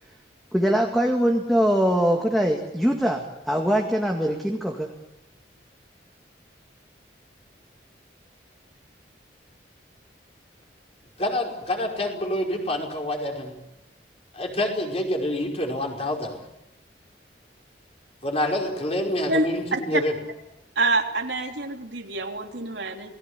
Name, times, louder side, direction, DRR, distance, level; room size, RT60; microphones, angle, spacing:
voice 1, 0.5-4.9, equal, ahead, 2 dB, 2.0 m, -22 dB
voice 2, 11.2-13.5 14.3-16.4 18.2-20.1, left 1 dB, 30° left, 1 dB, 5.3 m, -27 dB
voice 3, 19.3-20.0 20.7-23.1, right 2 dB, 75° right, 3 dB, 3.2 m, -26 dB
28.0 x 20.0 x 8.2 m, 0.87 s
head